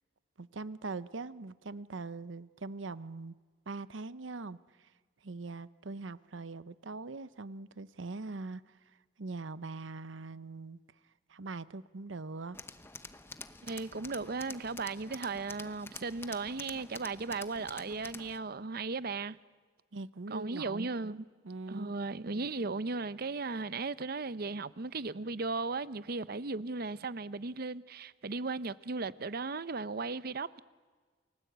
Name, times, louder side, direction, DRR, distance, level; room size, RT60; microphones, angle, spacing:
voice 1, 0.4-3.4 3.7-4.9 5.2-10.8 11.3-12.6 19.9-21.0 21.4-21.9, right 3 dB, 85° right, 0.8 m, -42 dB
Tools, 12.5-18.4, left 3 dB, 15° left, 0.9 m, -48 dB
voice 2, 13.6-19.4 20.3-21.2 21.7-30.6, right 3 dB, 55° right, 0.7 m, -36 dB
29.5 x 20.5 x 8.1 m
head